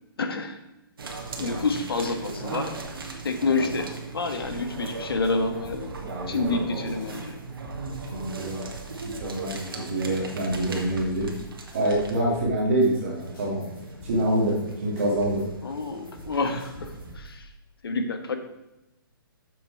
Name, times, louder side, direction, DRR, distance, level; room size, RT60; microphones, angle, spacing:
voice 1, 0.2-0.6 1.4-2.7 3.2-5.9 6.3-7.4 15.6-17.5 17.8-18.4, left 3 dB, 85° left, 6 dB, 1.4 m, -28 dB
sound 1, 1.0-12.5 12.8-17.1, right 3 dB, 70° right, 1.8 m, -38 dB
voice 2, 1.3-1.7 3.4-3.5 6.0-6.8 8.1-8.7 9.0-11.3 11.7-13.6 14.0-15.4, right 1 dB, 35° right, -4 dB, 2.4 m, -26 dB
sound 2, 4.4-17.4, right 2 dB, 15° left, 2.9 m, -45 dB
7.9 x 7.3 x 4.7 m, 0.95 s
hypercardioid pair, 180°, 12 cm